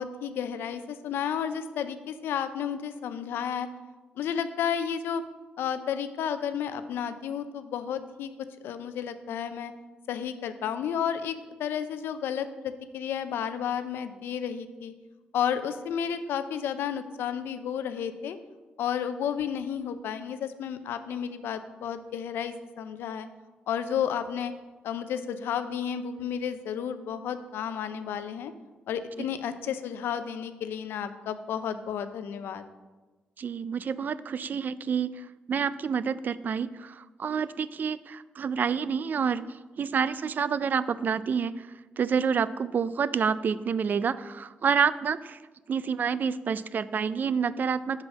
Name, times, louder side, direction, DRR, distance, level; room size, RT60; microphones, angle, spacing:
voice 1, 0.0-3.7 4.2-5.2 5.6-8.3 8.6-9.7 10.1-14.9 15.3-18.4 18.8-23.3 23.7-24.5 24.8-28.5 28.9-32.6, left 8 dB, 85° left, 11 dB, 0.5 m, -32 dB
voice 2, 33.4-39.4 39.8-41.7 42.0-45.4 45.7-48.0, right 6 dB, 55° right, 16 dB, 0.3 m, -28 dB
5.6 x 4.8 x 6.3 m, 1.2 s
cardioid pair, 65°, 4 cm